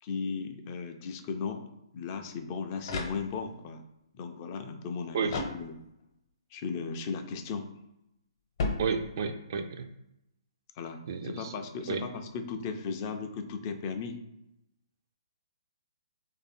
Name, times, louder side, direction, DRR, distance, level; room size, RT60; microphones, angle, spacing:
voice 1, 0.0-3.8 4.1-5.8 6.5-7.7 10.8-14.2, left 5 dB, 30° left, 6 dB, 0.4 m, -36 dB
sound 1, 2.8-3.7 5.3-6.2 8.6-9.5, left 3 dB, 50° left, 0.9 m, -36 dB
voice 2, 8.8-9.9 11.1-11.5 11.9-12.0, right 5 dB, 50° right, 7 dB, 0.4 m, -31 dB
3.3 x 2.6 x 4.1 m, 0.85 s
figure-of-eight pair, 130°, 3 cm